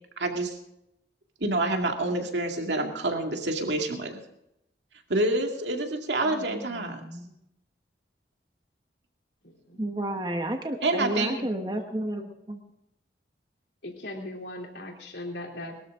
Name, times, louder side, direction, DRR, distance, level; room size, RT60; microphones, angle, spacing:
voice 1, 0.2-0.6 1.4-4.2 5.1-7.0 10.8-11.3, right 2 dB, 90° right, 3 dB, 2.2 m, -27 dB
voice 2, 6.3-7.3 9.8-12.6, right 1 dB, 25° right, 4 dB, 1.3 m, -32 dB
voice 3, 9.4-9.8 10.8-11.0 11.3-11.7 13.8-15.9, left 1 dB, 80° left, 1 dB, 3.1 m, -40 dB
21.0 x 13.0 x 3.7 m, 0.81 s
head